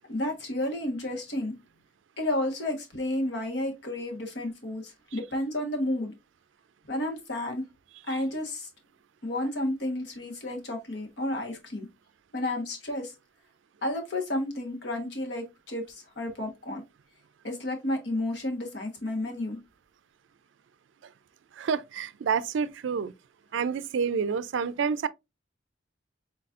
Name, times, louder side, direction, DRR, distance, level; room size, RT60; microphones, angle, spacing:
voice 1, 0.1-1.5 2.2-6.1 6.9-7.6 8.1-8.7 9.2-11.9 12.3-13.1 13.8-16.8 17.4-19.6, left 1 dB, 65° left, 1.3 m, -31 dB
voice 2, 21.6-23.1 23.5-25.1, right 6 dB, 80° right, 0.4 m, -28 dB
4.1 x 3.9 x 2.4 m
head